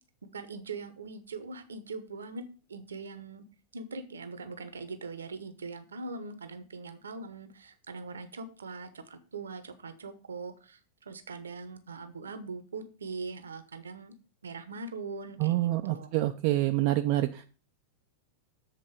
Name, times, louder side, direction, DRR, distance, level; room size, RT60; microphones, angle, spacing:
voice 1, 0.2-2.4 2.7-3.4 3.7-14.1 14.4-16.2, right 4 dB, 70° right, 11 dB, 0.9 m, -41 dB
voice 2, 15.4-17.4, right 15 dB, 45° right, 6 dB, 0.5 m, -27 dB
7.5 x 4.0 x 6.4 m, 0.36 s
figure-of-eight pair, 90°, 0 cm